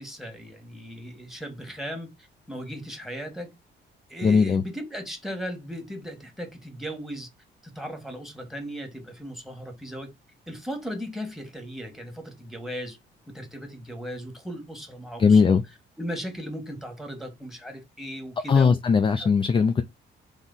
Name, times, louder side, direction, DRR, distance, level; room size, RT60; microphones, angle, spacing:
voice 1, 0.0-2.1 2.5-3.5 4.1-7.3 7.6-10.1 10.5-13.0 13.3-15.6 16.0-18.8 19.2-19.3, equal, ahead, 1.6 m, -37 dB
voice 2, 4.2-4.6 15.2-15.6 18.5-19.8, left 5 dB, 25° left, 0.4 m, -19 dB
3.7 x 3.0 x 3.9 m
cardioid pair, 90°, 20 cm